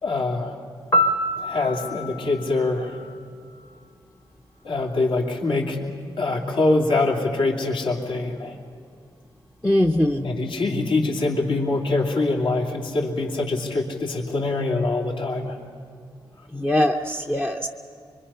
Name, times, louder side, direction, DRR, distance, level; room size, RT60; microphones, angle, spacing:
voice 1, 0.0-0.6 1.4-3.0 4.6-5.8 6.2-8.6 10.2-15.6, left 2 dB, 70° left, 0 dB, 2.7 m, -24 dB
Piano, 0.9-3.8 12.0-12.2, equal, 30° left, 1.3 m, -27 dB
voice 2, 9.6-10.3 16.5-17.7, left 1 dB, 5° left, 3 dB, 0.6 m, -21 dB
25.0 x 24.0 x 5.6 m, 2.2 s
wide cardioid pair, 175°, 9 cm